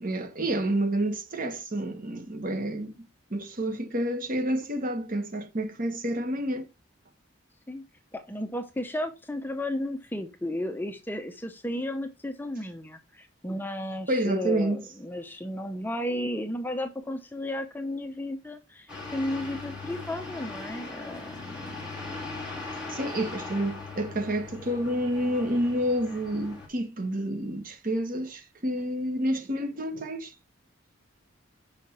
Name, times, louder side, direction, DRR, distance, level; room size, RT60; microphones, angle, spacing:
voice 1, 0.0-3.0 3.3-6.7 14.1-14.8 22.9-30.3, right 1 dB, 45° right, 1.0 m, -29 dB
voice 2, 8.1-22.3, left 1 dB, 10° left, 0.7 m, -34 dB
sound 1, 18.9-26.7, left 3 dB, 5° right, 1.9 m, -39 dB
5.7 x 5.5 x 4.2 m
head